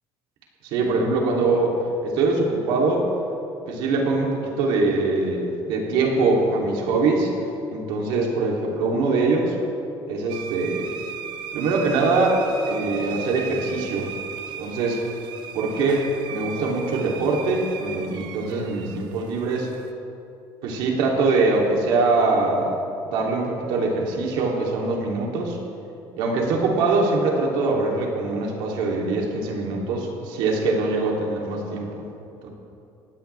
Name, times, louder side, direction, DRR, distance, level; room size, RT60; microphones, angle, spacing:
voice 1, 0.6-1.8 2.0-3.1 3.7-7.3 7.7-9.6 10.1-10.9 11.5-14.1 14.6-15.0 15.5-19.7 20.6-22.8 23.0-25.6 26.2-32.0 32.4-32.5, right 3 dB, 75° right, -1 dB, 3.1 m, -23 dB
sound 1, 10.3-19.9, right 7 dB, 60° right, 1.0 m, -37 dB
19.0 x 16.5 x 3.5 m, 2.7 s
cardioid pair, 170°, 9 cm